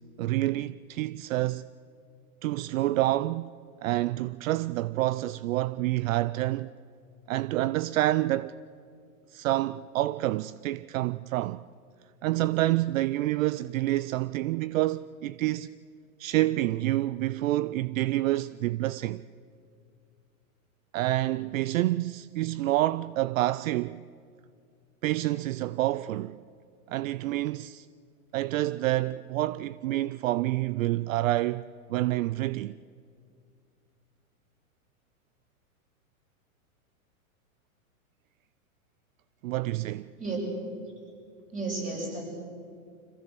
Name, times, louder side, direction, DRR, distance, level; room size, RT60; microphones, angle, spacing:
voice 1, 0.2-1.7 2.4-3.5 3.8-6.7 7.3-8.6 9.3-11.6 12.2-15.7 16.2-19.2 20.9-24.0 25.0-26.4 26.9-27.9 28.3-32.8 39.4-40.1, right 16 dB, 65° right, 0.6 m, -28 dB
voice 2, 41.5-42.2, right 3 dB, 20° right, 7.6 m, -32 dB
26.0 x 16.5 x 7.7 m
hypercardioid pair, 135°, 43 cm